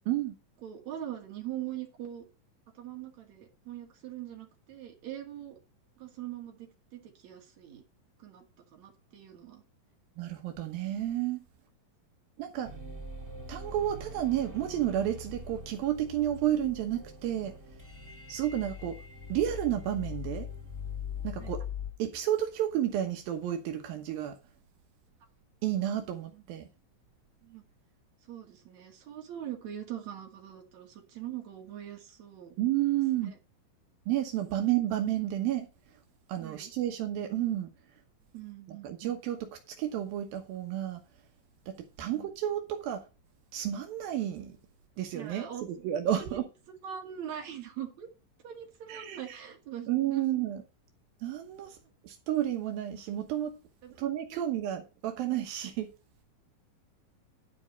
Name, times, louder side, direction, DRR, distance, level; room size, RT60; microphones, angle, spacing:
voice 1, 0.6-2.2 2.7-5.6 6.0-7.8 8.2-8.5 8.7-9.6 21.4-21.5 26.3-26.4 27.4-27.6 28.3-32.5 33.2-33.3 34.5-34.6 36.4-36.7 38.3-39.2 42.0-42.3 45.1-45.6 46.1-46.4 46.8-48.1 48.4-50.3 53.8-54.4, right 11 dB, 55° right, 3.3 m, -42 dB
voice 2, 10.2-11.5 12.4-12.7 13.5-17.5 18.3-19.0 19.3-20.5 21.2-21.6 22.0-24.4 25.6-26.7 32.6-33.3 34.1-35.7 36.3-37.7 38.7-41.0 42.0-43.0 43.5-44.6 45.0-46.5 48.9-49.4 49.9-50.6 51.2-51.8 52.0-53.5 54.0-55.9, right 12 dB, 85° right, 2.9 m, -31 dB
sound 1, 12.6-21.9, left 5 dB, 10° right, 0.8 m, -42 dB
10.5 x 5.3 x 5.2 m
omnidirectional pair, 4.1 m